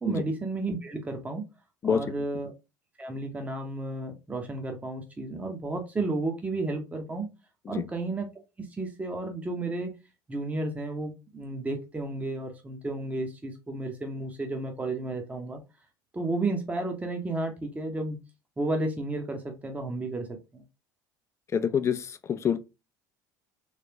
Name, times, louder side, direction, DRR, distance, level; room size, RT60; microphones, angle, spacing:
voice 1, 0.0-1.5 1.8-2.5 3.0-7.3 7.7-8.3 8.6-9.9 10.3-15.6 16.1-18.2 18.6-20.6, right 2 dB, 15° right, 0.8 m, -32 dB
voice 2, 21.5-22.6, left 7 dB, 25° left, 0.4 m, -26 dB
3.3 x 3.2 x 2.8 m
figure-of-eight pair, 65°, 10 cm